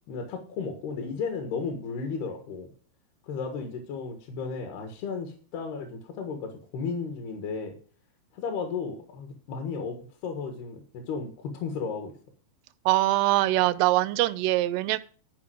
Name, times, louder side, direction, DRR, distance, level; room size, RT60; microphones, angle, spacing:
voice 1, 0.1-2.7 3.2-7.8 8.3-10.0 10.2-12.1, left 5 dB, 75° left, 4 dB, 3.6 m, -34 dB
voice 2, 12.9-15.0, right 17 dB, 85° right, 14 dB, 2.7 m, -23 dB
13.0 x 5.2 x 7.7 m, 0.43 s
omnidirectional pair, 4.6 m